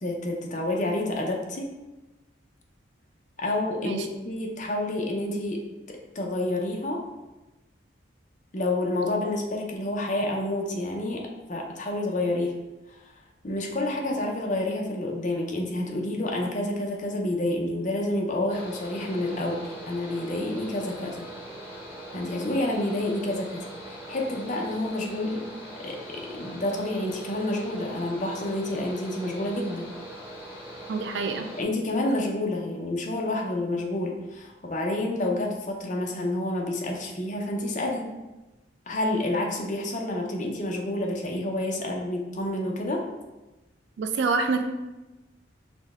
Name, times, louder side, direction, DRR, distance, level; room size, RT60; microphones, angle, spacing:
voice 1, 0.0-1.6 3.4-7.0 8.5-12.6 13.4-21.3 22.1-25.5 25.8-29.9 31.6-38.1 38.9-43.0, left 1 dB, 40° left, 0 dB, 0.6 m, -29 dB
Mechanical fan, 18.5-31.6, right 1 dB, 10° right, 0.8 m, -41 dB
voice 2, 30.9-31.5 44.0-44.6, right 4 dB, 70° right, 7 dB, 0.4 m, -26 dB
5.0 x 2.2 x 3.5 m, 1.1 s
head